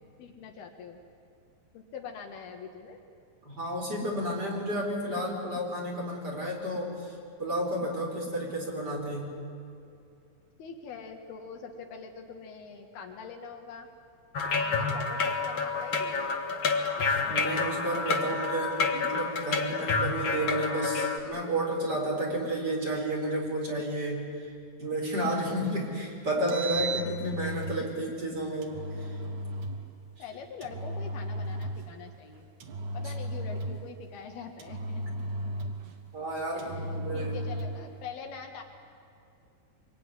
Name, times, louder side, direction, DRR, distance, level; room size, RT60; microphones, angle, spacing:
voice 1, 0.2-1.0 1.7-3.0 10.6-13.9 14.6-16.6 30.2-32.5 32.9-35.3 35.6-35.7 36.5-38.6, left 6 dB, 75° left, 4 dB, 3.6 m, -44 dB
voice 2, 3.5-7.1 7.4-9.3 17.2-24.5 24.8-29.2 36.1-37.3, right 1 dB, 25° right, -1 dB, 5.2 m, -31 dB
sound 1, 14.3-21.2, left 4 dB, 50° left, 1.6 m, -29 dB
Engine, 26.3-27.8 28.6-29.8 30.6-31.9 32.6-33.9 34.6-35.9 36.6-37.8, right 1 dB, 60° right, 2.8 m, -35 dB
24.5 x 23.0 x 10.0 m, 2.6 s
omnidirectional pair, 4.5 m